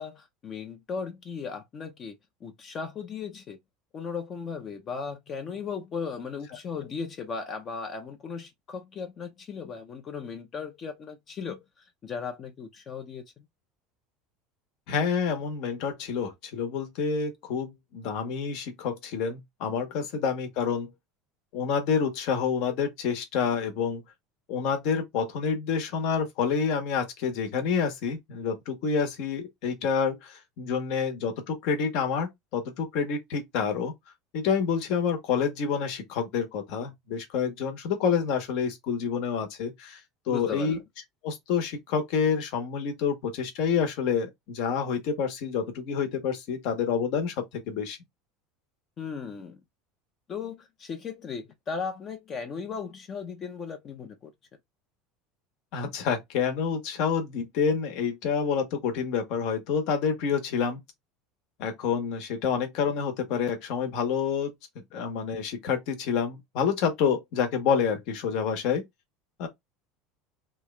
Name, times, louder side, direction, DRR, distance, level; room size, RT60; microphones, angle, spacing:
voice 1, 0.0-2.1 2.4-3.6 3.9-11.6 12.0-13.2 40.3-40.8 49.0-49.6 50.3-54.3, left 5 dB, 30° left, 0.6 m, -36 dB
voice 2, 14.9-20.9 21.5-24.0 24.5-33.9 34.3-40.0 40.3-40.8 41.2-48.0 55.7-60.8 61.6-64.5 64.9-68.8 69.4-69.5, left 6 dB, 60° left, 1.1 m, -28 dB
3.1 x 2.4 x 3.2 m
supercardioid pair, 140°, 0 cm